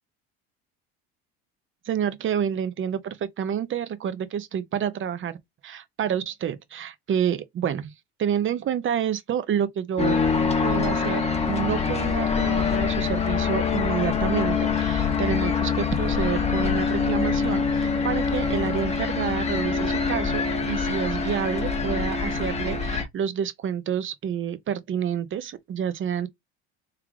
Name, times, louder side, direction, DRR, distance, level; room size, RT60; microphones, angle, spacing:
voice 1, 1.8-5.4 5.6-7.9 8.2-10.2 10.6-26.3, right 8 dB, 40° right, 0.8 m, -29 dB
sound 1, 10.0-23.0, left 5 dB, 20° left, 1.2 m, -24 dB
3.5 x 3.4 x 3.5 m
supercardioid pair, 100°, 32 cm